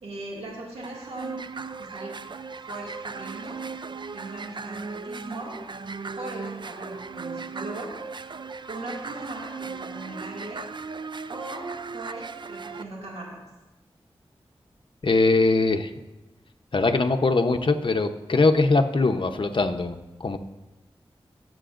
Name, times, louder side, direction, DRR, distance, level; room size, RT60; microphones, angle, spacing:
voice 1, 0.0-1.4 1.8-2.2 2.7-3.6 4.1-5.6 6.2-7.9 8.7-10.7 11.3-13.4, right 2 dB, 85° right, -4 dB, 2.3 m, -39 dB
sound 1, 0.8-12.8, right 4 dB, 50° right, 0.4 m, -37 dB
voice 2, 15.0-15.9 16.7-20.4, left 3 dB, 55° left, 6 dB, 0.8 m, -22 dB
18.5 x 7.9 x 2.6 m, 1.1 s
cardioid pair, 40°, 10 cm